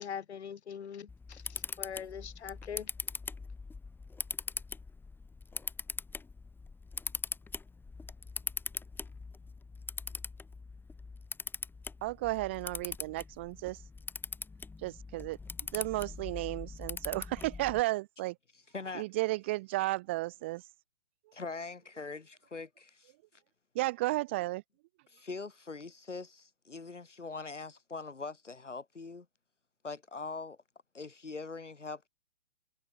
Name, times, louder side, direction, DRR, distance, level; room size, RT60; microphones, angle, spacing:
voice 1, 0.0-2.9, left 7 dB, 65° left, 1.4 m, -42 dB
Camera, 1.1-17.8, left 4 dB, 5° left, 3.1 m, -42 dB
voice 2, 12.0-13.8 14.8-15.4 15.7-18.3 18.9-20.6 23.7-24.6, right 19 dB, 10° right, 0.4 m, -33 dB
voice 3, 18.7-19.1 21.3-23.1 25.1-29.3 29.8-30.6 30.9-32.1, left 4 dB, 85° left, 4.0 m, -42 dB
figure-of-eight pair, 135°, 35 cm